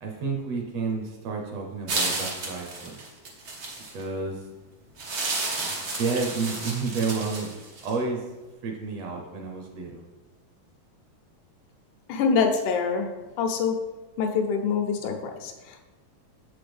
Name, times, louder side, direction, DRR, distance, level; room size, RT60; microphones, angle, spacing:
voice 1, 0.0-3.1 3.9-4.5 5.6-7.5 7.8-8.3 8.6-10.0, right 4 dB, 70° right, 1 dB, 1.8 m, -30 dB
sound 1, 1.9-4.0 5.0-7.9, right 3 dB, 85° right, 0.8 m, -32 dB
voice 2, 12.1-13.1 13.4-13.7 14.2-15.8, left 5 dB, 85° left, 4 dB, 2.2 m, -25 dB
6.9 x 6.2 x 3.4 m, 1.2 s
omnidirectional pair, 3.4 m